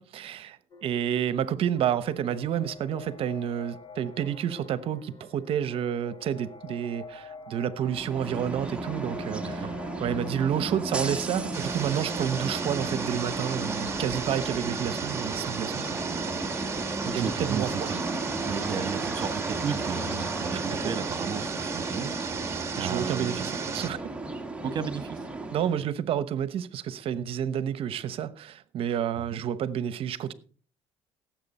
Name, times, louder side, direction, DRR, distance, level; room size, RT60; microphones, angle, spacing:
voice 1, 0.0-9.7 10.0-16.4 17.1-17.9 20.8-20.9 22.8-24.0 25.5-30.3, right 9 dB, 60° right, 0.9 m, -30 dB
sound 1, 0.7-14.7, left 4 dB, 45° left, 1.4 m, -47 dB
sound 2, 7.8-25.9, right 2 dB, 10° right, 1.5 m, -34 dB
sound 3, 11.5-23.9, right 5 dB, 25° right, 1.6 m, -35 dB
voice 2, 17.0-18.1 18.4-23.5 24.6-25.2 25.8-25.9 29.3-29.4, right 7 dB, 40° right, 1.5 m, -34 dB
16.5 x 7.6 x 4.2 m
cardioid pair, 95°, 11 cm